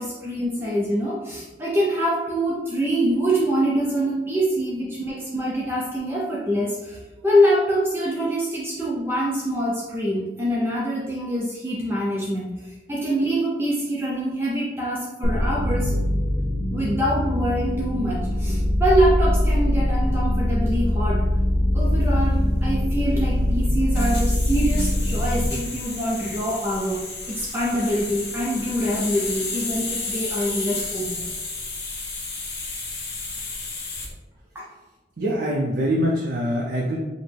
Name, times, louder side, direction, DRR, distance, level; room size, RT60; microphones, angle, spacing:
voice 1, 0.0-16.0 16.7-21.3 21.7-31.3 34.5-34.7, equal, 15° right, -5 dB, 0.4 m, -25 dB
sound 1, 15.2-25.5, left 1 dB, 35° left, 0.6 m, -22 dB
sound 2, 21.8-34.1, left 3 dB, 65° left, 1.2 m, -33 dB
voice 2, 35.2-37.0, equal, 60° right, -3 dB, 0.5 m, -24 dB
5.1 x 2.1 x 3.3 m, 1.1 s
head